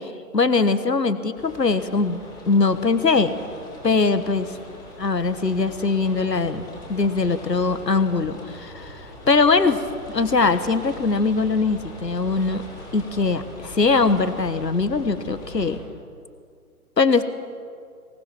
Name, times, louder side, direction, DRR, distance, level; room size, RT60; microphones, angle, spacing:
voice 1, 0.0-2.2 2.5-3.3 3.8-4.5 5.0-9.8 10.1-12.6 12.9-15.8 17.0-17.2, left 4 dB, 85° left, 12 dB, 1.4 m, -21 dB
sound 1, 1.3-15.8, left 1 dB, 10° left, 4.6 m, -41 dB
23.0 x 19.0 x 6.0 m, 2.2 s
figure-of-eight pair, 135°, 48 cm